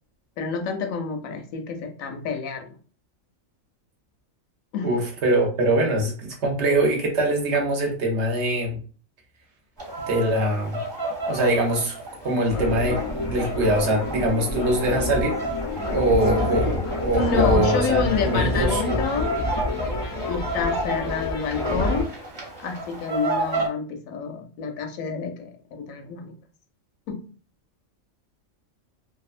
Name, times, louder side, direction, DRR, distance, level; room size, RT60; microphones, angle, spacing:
voice 1, 0.4-2.7 4.7-4.9 17.2-19.3 20.3-22.1 22.6-26.3 27.1-27.2, left 5 dB, 80° left, 5 dB, 1.0 m, -28 dB
voice 2, 4.8-8.8 10.1-10.8 11.3-12.0 12.2-13.0 13.3-15.3 15.9-19.0, right 1 dB, 60° right, 0 dB, 1.0 m, -23 dB
sound 1, 9.8-23.7, right 2 dB, 20° right, 0.8 m, -32 dB
sound 2, 12.5-22.0, left 2 dB, 50° left, 0.3 m, -28 dB
2.7 x 2.3 x 2.4 m, 0.40 s
omnidirectional pair, 1.4 m